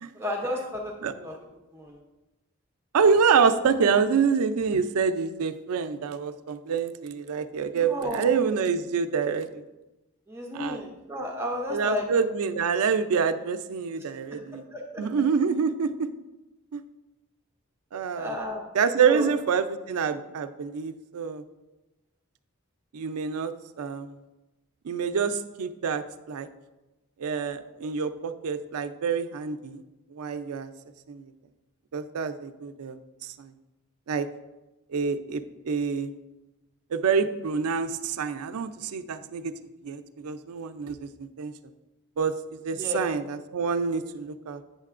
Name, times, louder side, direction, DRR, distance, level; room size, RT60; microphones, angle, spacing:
voice 1, 0.1-1.3 1.7-2.0 7.8-8.3 10.3-12.1 14.3-15.0 18.1-18.7 19.1-19.3 42.7-43.0, left 1 dB, 10° right, 0 dB, 0.6 m, -33 dB
voice 2, 2.9-9.6 10.5-10.8 11.7-14.6 15.0-16.1 16.7-16.8 17.9-18.4 18.7-21.4 22.9-23.5 23.8-24.1 24.9-26.5 27.2-29.8 30.2-30.7 31.1-31.2 31.9-33.0 33.4-33.5 34.1-34.3 34.9-36.1 36.9-39.5 39.8-41.5 42.2-42.3 42.6-44.6, right 6 dB, 90° right, 10 dB, 0.4 m, -26 dB
8.8 x 6.6 x 2.4 m, 1.1 s
head